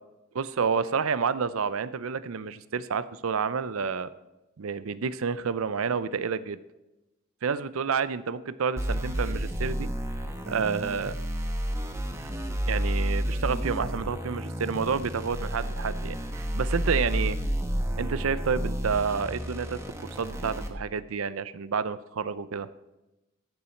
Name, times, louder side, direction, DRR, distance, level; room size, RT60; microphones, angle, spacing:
voice 1, 0.3-4.1 4.6-6.6 7.4-9.9 10.5-11.2 12.2-12.3 12.7-17.4 17.9-22.7, right 6 dB, 80° right, 15 dB, 0.5 m, -29 dB
sound 1, 8.8-20.7, equal, 15° right, 1.0 m, -31 dB
14.5 x 7.0 x 4.4 m, 1.0 s
head